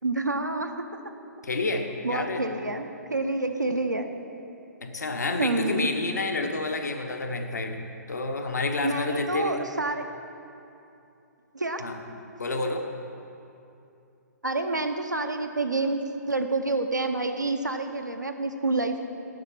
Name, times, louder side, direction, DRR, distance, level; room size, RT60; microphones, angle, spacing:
voice 1, 0.0-0.7 2.0-4.1 5.4-5.9 8.8-10.0 11.5-11.8 14.4-19.1, right 2 dB, 85° right, 6 dB, 0.7 m, -28 dB
voice 2, 1.4-2.5 4.8-7.8 8.1-9.6 11.8-12.0 12.4-12.9, left 3 dB, 70° left, 4 dB, 1.0 m, -29 dB
7.9 x 6.5 x 7.2 m, 2.7 s
figure-of-eight pair, 120°, 9 cm